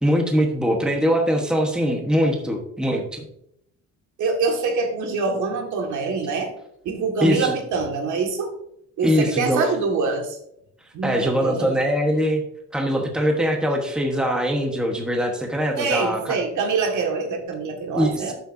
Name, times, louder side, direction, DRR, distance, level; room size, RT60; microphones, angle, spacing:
voice 1, 0.0-3.3 7.2-7.5 9.0-9.6 11.0-12.4 12.7-16.4 17.9-18.3, equal, 5° right, 1 dB, 1.2 m, -22 dB
voice 2, 4.2-6.5 6.8-8.5 9.0-10.4 10.9-11.8 15.8-18.3, right 4 dB, 75° right, 3 dB, 1.8 m, -25 dB
12.0 x 6.7 x 2.6 m, 0.73 s
cardioid pair, 150°, 30 cm